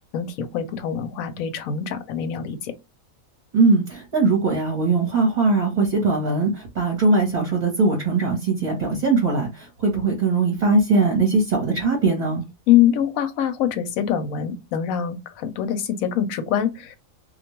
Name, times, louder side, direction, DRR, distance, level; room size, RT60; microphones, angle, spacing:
voice 1, 0.1-2.7 12.7-17.0, left 10 dB, 85° left, 1.0 m, -24 dB
voice 2, 3.5-12.4, right 3 dB, 40° right, 0.8 m, -20 dB
2.3 x 2.2 x 2.9 m
omnidirectional pair, 1.4 m